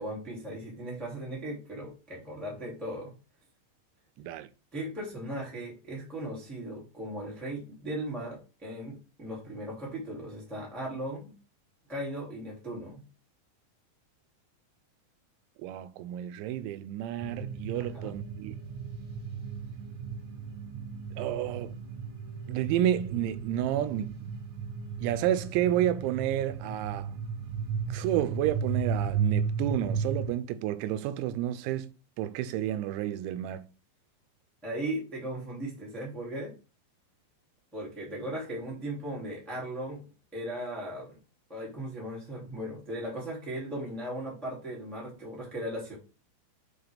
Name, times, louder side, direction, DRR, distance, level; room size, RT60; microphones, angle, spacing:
voice 1, 0.0-3.1 4.7-11.3 11.9-13.0 17.7-18.1 34.6-36.5 37.7-40.0 40.3-41.2 41.5-45.9, right 1 dB, ahead, 0.9 m, -37 dB
voice 2, 4.2-4.5 15.6-18.6 21.2-21.7 22.5-24.3 25.0-27.1 27.9-31.9 32.2-33.6, right 12 dB, 90° right, 2.9 m, -30 dB
sound 1, 17.2-30.3, right 5 dB, 75° right, 4.3 m, -35 dB
8.0 x 4.0 x 3.4 m
omnidirectional pair, 5.2 m